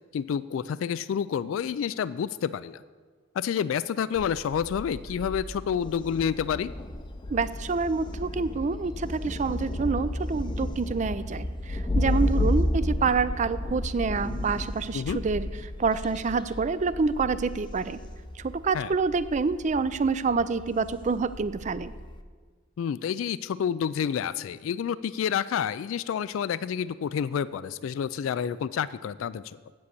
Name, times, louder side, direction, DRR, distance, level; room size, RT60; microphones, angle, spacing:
voice 1, 0.1-2.8 3.4-6.7 14.9-15.2 18.7-18.9 22.8-29.4, left 8 dB, 80° left, 16 dB, 0.3 m, -29 dB
Thunder, 4.2-22.2, left 1 dB, 25° left, 0.6 m, -33 dB
voice 2, 7.3-15.5 15.8-18.0 18.4-21.9, right 4 dB, 35° right, 15 dB, 0.4 m, -27 dB
8.3 x 7.7 x 8.2 m, 1.5 s
head